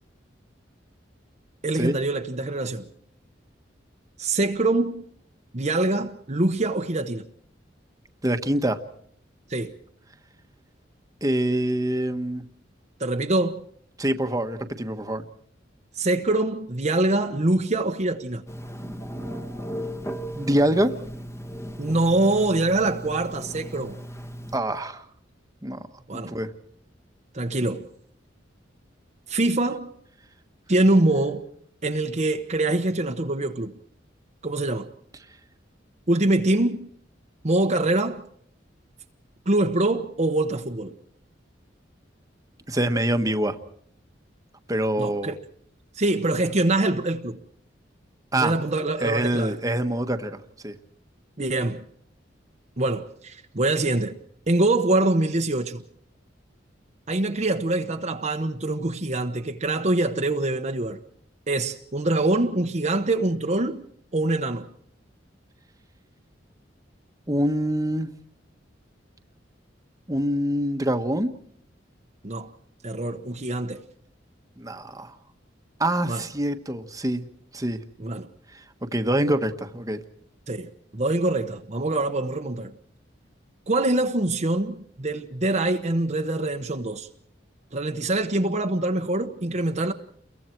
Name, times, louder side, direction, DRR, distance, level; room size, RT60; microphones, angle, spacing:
voice 1, 1.6-2.8 4.2-5.0 5.5-7.2 9.5-9.7 13.0-13.6 16.0-18.4 21.8-24.0 26.1-26.3 27.3-27.9 29.3-29.9 30.7-31.4 31.8-33.7 34.4-34.9 36.1-36.9 37.4-38.2 39.5-40.9 45.0-45.4 46.0-47.4 48.3-49.6 51.4-51.8 52.8-54.1 54.5-55.8 57.1-61.0 61.5-63.8 64.1-64.7 72.2-72.5 72.8-73.8 76.1-76.2 78.0-78.3 80.5-82.7 83.7-87.1 87.7-89.9, right 2 dB, 40° right, 1.1 m, -24 dB
voice 2, 8.2-8.8 11.2-12.4 14.0-15.2 20.3-20.9 24.5-25.0 25.6-25.8 26.3-26.5 42.7-43.6 44.7-45.3 48.3-48.5 49.0-50.7 67.3-68.1 70.1-71.3 74.6-75.1 75.8-77.3 77.5-77.8 78.9-80.0, right 1 dB, 20° right, 1.4 m, -25 dB
Telephone, 18.5-24.6, equal, 15° left, 1.5 m, -36 dB
29.5 x 23.0 x 4.6 m
head